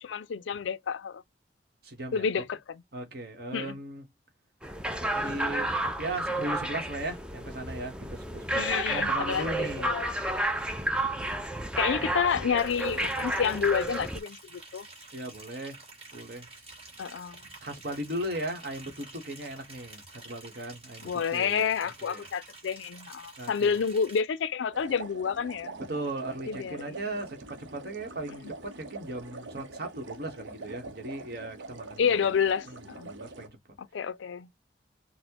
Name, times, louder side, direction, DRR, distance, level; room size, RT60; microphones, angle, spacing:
voice 1, 0.0-1.2 2.1-2.8 3.5-3.8 8.6-10.1 11.8-14.9 17.0-17.4 21.0-25.8 26.5-27.0 32.0-33.1 33.9-34.5, left 6 dB, 85° left, 0.4 m, -29 dB
voice 2, 1.8-2.4 2.9-4.1 5.0-5.7 6.0-10.0 11.8-12.0 15.1-15.8 16.1-16.5 17.6-21.6 22.0-22.3 23.4-23.8 25.9-32.2 32.7-33.6, right 1 dB, 55° right, 1.1 m, -37 dB
sound 1, 4.6-14.2, right 1 dB, 5° right, 0.4 m, -31 dB
Liquid, 12.6-24.2, right 2 dB, 30° right, 1.6 m, -49 dB
sound 2, 24.7-33.5, right 2 dB, 90° right, 0.7 m, -44 dB
4.0 x 2.1 x 2.9 m
head